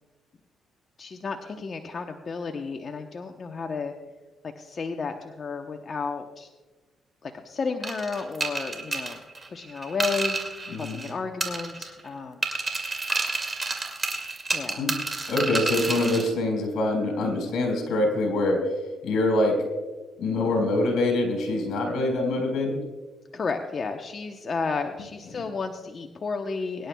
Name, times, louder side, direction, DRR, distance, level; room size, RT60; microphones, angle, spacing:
voice 1, 1.0-3.9 4.6-6.5 7.2-9.2 9.5-10.4 10.8-12.5 14.5-14.9 23.3-26.9, left 4 dB, 45° left, 4 dB, 0.8 m, -32 dB
sound 1, 7.8-11.1 11.4-12.1 12.4-16.3, right 3 dB, 30° right, 2.2 m, -30 dB
voice 2, 10.7-11.0 14.8-14.9 15.3-18.7 19.0-19.6 20.2-22.8, left 2 dB, 75° left, 2 dB, 4.0 m, -24 dB
23.5 x 10.5 x 2.3 m, 1.3 s
cardioid pair, 90°, 0 cm